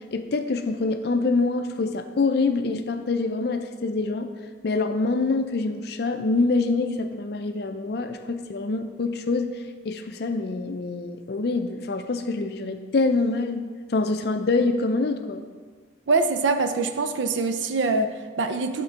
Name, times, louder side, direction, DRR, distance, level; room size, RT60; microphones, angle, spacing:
voice 1, 0.1-4.3 4.6-9.5 9.8-15.4, left 3 dB, 55° left, 7 dB, 0.4 m, -25 dB
voice 2, 16.1-18.8, right 3 dB, 80° right, 9 dB, 0.5 m, -24 dB
8.4 x 3.8 x 4.4 m, 1.5 s
head